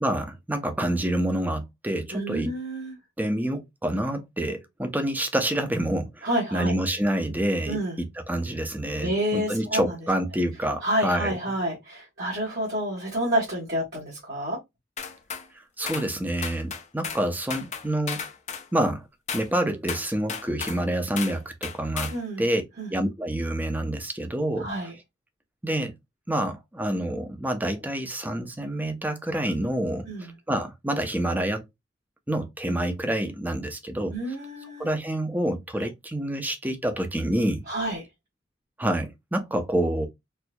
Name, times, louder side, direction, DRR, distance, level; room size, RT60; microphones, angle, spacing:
voice 1, 0.0-2.5 3.2-11.4 15.8-18.2 18.7-19.0 19.3-22.1 22.4-22.6 22.9-24.7 25.6-25.9 26.3-30.1 30.5-31.6 32.3-34.1 34.8-37.6 38.8-40.1, right 1 dB, 10° right, 0.6 m, -27 dB
voice 2, 2.1-3.0 6.2-6.7 7.7-8.0 9.0-9.9 10.8-14.6 22.1-22.5 22.8-22.9 24.6-24.9 30.1-30.3 34.1-34.9 37.7-38.0, right 1 dB, 55° right, 1.7 m, -29 dB
sound 1, 15.0-15.5 15.9-16.1 16.4-17.2 17.5-18.7 19.3-19.5 19.9-20.8 21.2-21.4 21.6-22.2, left 6 dB, 35° left, 0.5 m, -34 dB
4.4 x 2.7 x 2.2 m
head